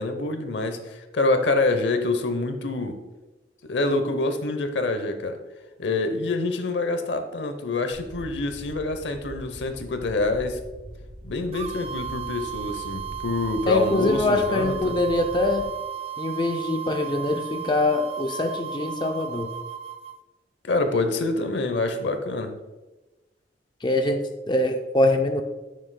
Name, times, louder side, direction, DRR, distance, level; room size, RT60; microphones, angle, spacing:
voice 1, 0.0-3.0 3.6-5.4 5.8-10.6 11.2-15.0 20.6-22.6, left 2 dB, 85° left, 8 dB, 0.8 m, -26 dB
sound 1, 7.9-15.7, equal, 65° right, 1.5 m, -42 dB
sound 2, 11.5-20.2, right 9 dB, 35° right, 0.3 m, -35 dB
voice 2, 13.7-15.6 16.2-19.5 23.8-25.4, left 2 dB, 25° left, 4 dB, 0.4 m, -24 dB
9.4 x 6.6 x 2.2 m, 1.1 s
head